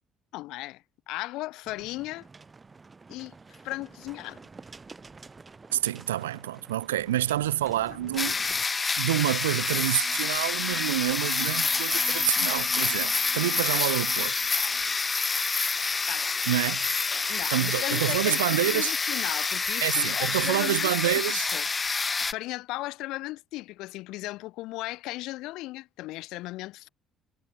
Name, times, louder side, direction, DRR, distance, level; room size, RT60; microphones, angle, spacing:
voice 1, 0.3-2.3 3.1-4.4 7.9-8.4 16.1-16.5 17.3-22.0 22.3-26.9, left 19 dB, 60° left, 1.0 m, -37 dB
sound 1, 1.6-8.6, right 4 dB, 25° right, 0.9 m, -49 dB
voice 2, 5.7-8.3 9.0-14.3 16.5-16.8 17.5-18.9 19.8-21.5, right 13 dB, 75° right, 0.6 m, -27 dB
sound 2, 8.2-22.3, left 4 dB, 25° left, 0.5 m, -27 dB
sound 3, 8.9-9.0 9.2-15.0, right 1 dB, 5° right, 5.0 m, -53 dB
figure-of-eight pair, 50°, 0 cm